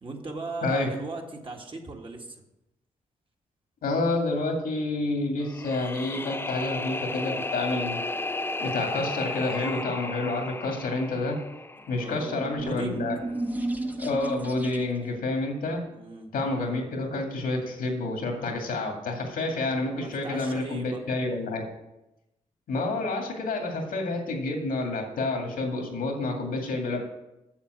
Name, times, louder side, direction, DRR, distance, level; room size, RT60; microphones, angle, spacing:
voice 1, 0.0-2.4 11.8-13.0 15.9-16.3 20.0-21.1, right 3 dB, 35° right, 1 dB, 1.9 m, -38 dB
voice 2, 3.8-8.0 8.6-11.4 11.9-13.2 14.0-15.9 16.3-21.6 22.7-27.0, left 2 dB, 85° left, 2 dB, 2.2 m, -29 dB
sound 1, 5.4-12.5, left 2 dB, 15° left, 0.4 m, -34 dB
sound 2, 12.2-15.2, right 2 dB, 10° right, 1.0 m, -33 dB
7.3 x 7.0 x 6.6 m, 0.92 s
cardioid pair, 60°, 14 cm